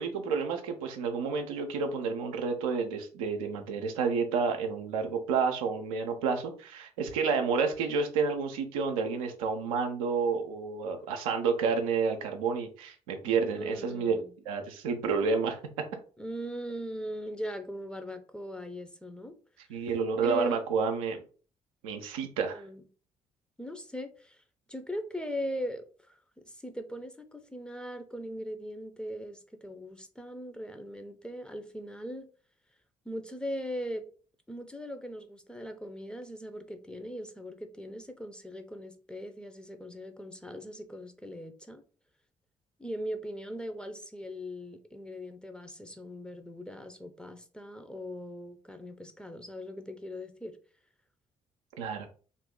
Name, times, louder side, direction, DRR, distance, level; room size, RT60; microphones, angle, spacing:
voice 1, 0.0-14.1 14.5-15.6 19.7-21.2 21.8-22.6 51.8-52.1, right 5 dB, 75° right, 0.6 m, -30 dB
voice 2, 13.5-14.3 16.2-19.3 20.2-20.6 22.5-22.8 23.6-24.4 24.7-32.3 33.1-34.0 34.5-41.8 42.8-50.6, equal, 5° left, 0.6 m, -40 dB
2.7 x 2.6 x 3.7 m
figure-of-eight pair, 45°, 18 cm